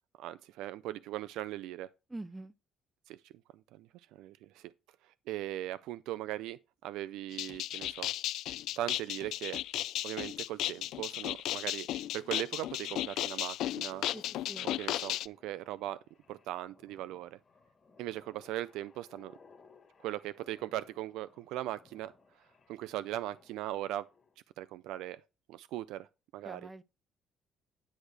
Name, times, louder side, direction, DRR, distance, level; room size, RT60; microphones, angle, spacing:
voice 1, 0.2-1.9 3.1-3.3 3.7-4.7 5.0-8.1 8.8-9.6 10.0-11.9 12.1-14.1 14.6-16.0 16.3-17.4 18.0-19.3 20.0-22.1 22.7-24.1 24.6-25.2 25.5-26.6, right 14 dB, 85° right, 0.3 m, -39 dB
voice 2, 2.1-2.5 14.1-14.7 26.4-26.8, right 2 dB, 10° right, 0.4 m, -45 dB
sound 1, 7.3-15.3, left 13 dB, 65° left, 0.3 m, -35 dB
sound 2, 14.5-24.4, left 4 dB, 25° left, 1.2 m, -63 dB
9.9 x 6.3 x 3.3 m
cardioid pair, 170°, 0 cm